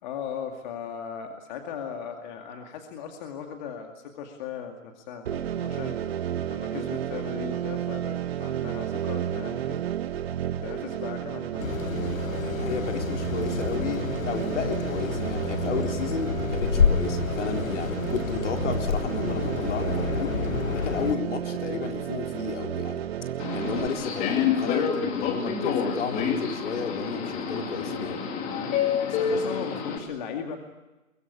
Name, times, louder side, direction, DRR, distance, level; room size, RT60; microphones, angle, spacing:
voice 1, 0.0-6.0 6.5-9.8 10.6-12.6 29.0-30.6, left 7 dB, 35° left, 3 dB, 2.3 m, -38 dB
sound 1, 5.3-23.9, right 10 dB, 50° right, 1.4 m, -31 dB
sound 2, 11.6-21.1, left 6 dB, 80° left, 1.1 m, -29 dB
voice 2, 12.6-23.0 23.5-28.3 29.3-29.4, left 5 dB, 60° left, 3 dB, 4.1 m, -33 dB
Subway metro underground, 23.4-30.0, left 6 dB, 20° left, 2.5 m, -28 dB
23.0 x 22.5 x 8.5 m, 1.1 s
hypercardioid pair, 145°, 40 cm